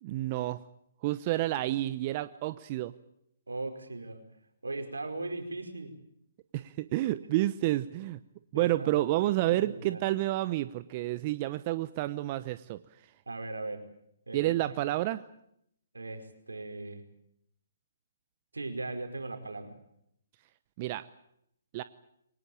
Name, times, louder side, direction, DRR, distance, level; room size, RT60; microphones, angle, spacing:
voice 1, 0.0-0.6 1.0-2.9 6.5-8.2 8.5-12.8 14.3-15.2 20.8-21.0 21.7-21.8, right 16 dB, 35° right, 13 dB, 0.9 m, -29 dB
voice 2, 3.5-4.2 4.6-6.0 8.5-9.0 9.5-10.0 13.3-13.9 14.3-14.5 15.9-17.0 18.5-19.8, right 2 dB, 85° right, 6 dB, 5.0 m, -38 dB
23.5 x 19.5 x 8.9 m, 0.73 s
figure-of-eight pair, 135°, 0 cm